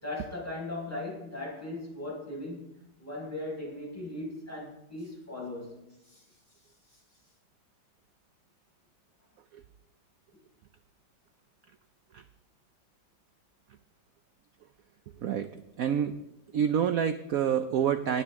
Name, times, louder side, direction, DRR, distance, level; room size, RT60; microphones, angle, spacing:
voice 1, 0.0-5.9, left 2 dB, 5° left, -5 dB, 5.5 m, -38 dB
voice 2, 15.8-16.2 16.5-18.2, right 8 dB, 85° right, 10 dB, 0.7 m, -27 dB
19.0 x 9.6 x 3.6 m, 0.85 s
omnidirectional pair, 2.2 m